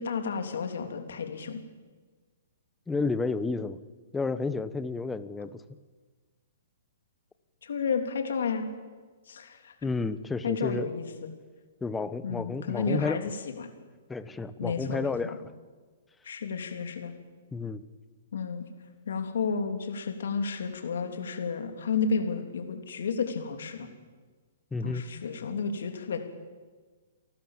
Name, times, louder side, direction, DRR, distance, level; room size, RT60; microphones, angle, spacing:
voice 1, 0.0-1.6 7.6-8.7 9.3-9.7 10.4-11.3 12.2-13.7 14.6-15.4 16.2-17.1 18.3-18.7 19.0-23.9 24.8-26.2, left 5 dB, 75° left, 6 dB, 3.0 m, -32 dB
voice 2, 2.9-3.8 4.1-5.6 9.8-10.9 11.8-13.2 14.1-15.3 17.5-17.8 24.7-25.1, left 4 dB, 10° left, 13 dB, 0.9 m, -31 dB
30.0 x 12.0 x 7.4 m, 1.4 s
hypercardioid pair, 140°, 0 cm